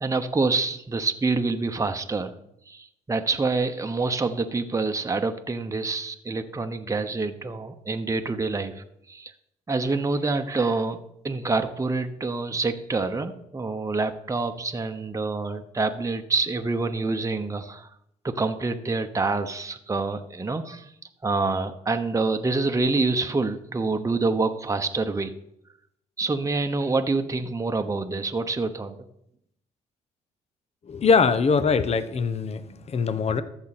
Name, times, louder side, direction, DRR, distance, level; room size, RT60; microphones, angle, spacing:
voice 1, 0.0-2.3 2.7-9.3 9.7-11.0 11.2-17.9 18.2-20.9 21.2-25.3 26.2-29.0, right 3 dB, 20° right, 6 dB, 1.0 m, -26 dB
voice 2, 30.9-33.4, left 5 dB, 45° left, 13 dB, 0.9 m, -22 dB
14.0 x 6.2 x 4.2 m, 0.76 s
hypercardioid pair, 55°, 16 cm